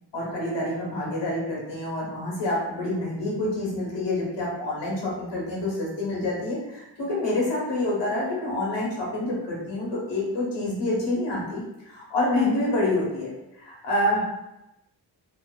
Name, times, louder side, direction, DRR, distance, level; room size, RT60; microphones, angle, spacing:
voice 1, 0.1-13.3 13.6-14.4, left 1 dB, 90° left, -4 dB, 1.1 m, -27 dB
2.8 x 2.2 x 2.2 m, 0.90 s
wide cardioid pair, 130°, 41 cm